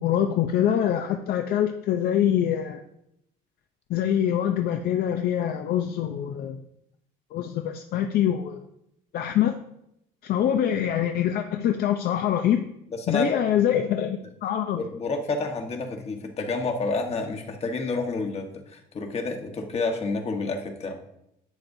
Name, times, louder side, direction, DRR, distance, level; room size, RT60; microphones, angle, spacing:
voice 1, 0.0-2.8 3.9-6.6 7.3-8.6 9.1-9.6 10.2-12.6 13.1-14.9, left 10 dB, 65° left, 5 dB, 0.6 m, -24 dB
voice 2, 12.9-13.4 14.7-21.0, left 3 dB, 40° left, 3 dB, 1.3 m, -29 dB
11.0 x 7.7 x 2.7 m, 0.81 s
cardioid pair, 110°, 17 cm